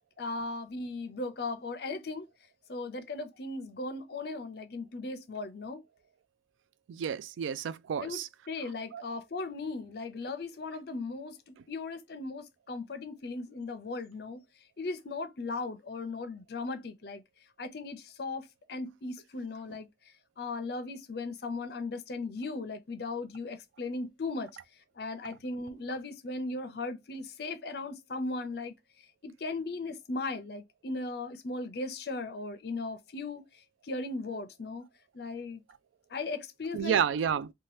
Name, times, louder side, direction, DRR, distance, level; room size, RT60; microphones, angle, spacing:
voice 1, 0.2-2.2 2.7-5.8 8.0-8.2 8.5-14.4 14.8-17.2 17.6-18.4 18.7-19.9 20.4-24.5 25.0-28.7 29.2-33.4 33.9-34.9 35.1-35.6 36.1-37.0, left 3 dB, 55° left, 0.5 m, -37 dB
voice 2, 6.9-8.3 8.9-9.0 36.7-37.5, right 8 dB, 85° right, 0.3 m, -30 dB
2.8 x 2.2 x 3.2 m
head